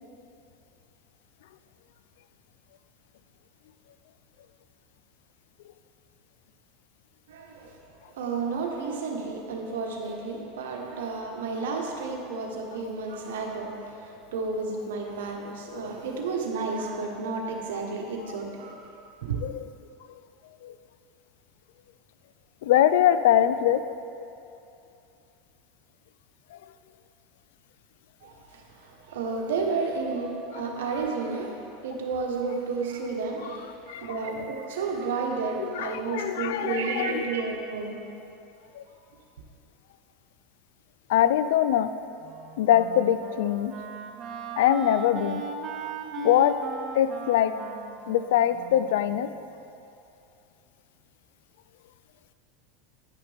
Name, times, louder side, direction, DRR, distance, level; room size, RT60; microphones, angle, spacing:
voice 1, 7.3-7.8 8.1-18.9 19.2-19.5 28.2-38.1, right 4 dB, 85° right, 1 dB, 1.1 m, -32 dB
voice 2, 22.6-23.8 26.5-26.6 30.5-30.6 33.9-34.1 35.6-37.2 38.7-38.8 41.1-41.9 42.6-43.7 44.6-45.4 46.2-46.5 46.9-47.5 48.1-49.3, left 11 dB, 80° left, 13 dB, 0.3 m, -23 dB
Wind instrument woodwind instrument, 42.2-49.4, right 6 dB, 40° right, 0.7 m, -38 dB
10.0 x 5.9 x 3.5 m, 2.7 s
supercardioid pair, 125°, 0 cm